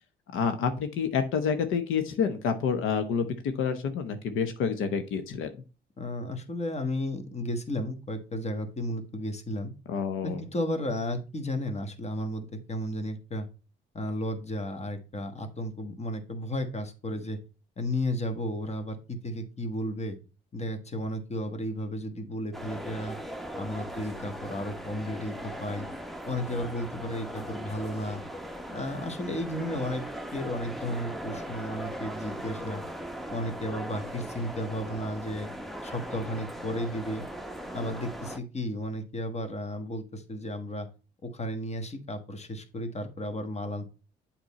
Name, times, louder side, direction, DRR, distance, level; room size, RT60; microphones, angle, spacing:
voice 1, 0.3-5.6 9.9-10.4, left 6 dB, 90° left, 9 dB, 0.9 m, -28 dB
voice 2, 6.0-9.7 10.2-13.5 13.9-17.4 17.8-20.2 20.5-23.2 23.5-25.9 26.2-28.2 28.7-30.0 30.3-32.8 33.3-35.5 35.8-37.2 37.7-40.9 41.2-43.9, left 1 dB, 35° left, 7 dB, 1.4 m, -33 dB
sound 1, 22.5-38.4, right 1 dB, ahead, 0.8 m, -39 dB
8.0 x 4.4 x 4.2 m, 0.33 s
cardioid pair, 90°, 20 cm